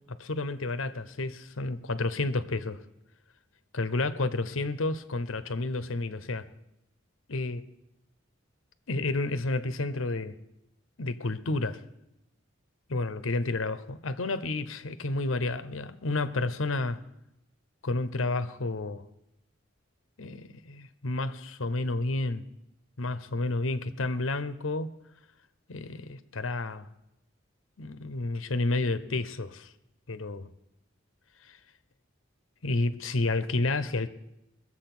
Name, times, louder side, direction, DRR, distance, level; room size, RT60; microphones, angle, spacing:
voice 1, 0.1-2.8 3.7-6.5 7.3-7.7 8.9-10.3 11.0-11.8 12.9-17.0 17.8-19.0 20.2-22.4 23.0-24.9 25.7-26.9 27.8-29.7 30.1-30.5 31.4-31.6 32.6-34.1, left 2 dB, 90° left, 0.9 m, -30 dB
22.0 x 7.7 x 6.1 m
head